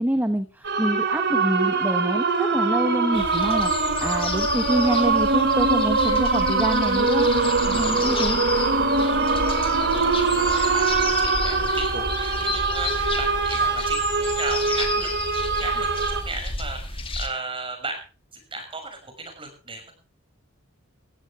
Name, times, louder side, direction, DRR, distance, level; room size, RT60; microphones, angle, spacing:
voice 1, 0.0-8.4, equal, 10° right, 8 dB, 1.2 m, -26 dB
sound 1, 0.6-16.2, right 4 dB, 55° right, 2.8 m, -23 dB
sound 2, 3.1-17.3, left 3 dB, 25° left, 2.5 m, -31 dB
voice 2, 10.0-15.1 15.6-18.0 18.3-19.9, right 3 dB, 25° right, 5 dB, 6.2 m, -35 dB
18.0 x 15.5 x 3.4 m, 0.35 s
head